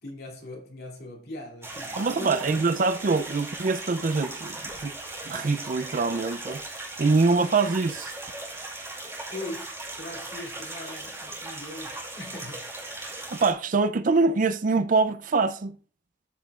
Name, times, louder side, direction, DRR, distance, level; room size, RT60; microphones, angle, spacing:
voice 1, 0.0-2.5 9.3-12.7, left 1 dB, 60° left, 2.7 m, -40 dB
sound 1, 1.6-13.5, right 2 dB, 15° right, 2.5 m, -38 dB
voice 2, 2.0-4.9 5.3-6.6 7.0-8.1 13.3-15.8, right 4 dB, 45° right, 0.5 m, -24 dB
13.0 x 5.7 x 2.4 m
head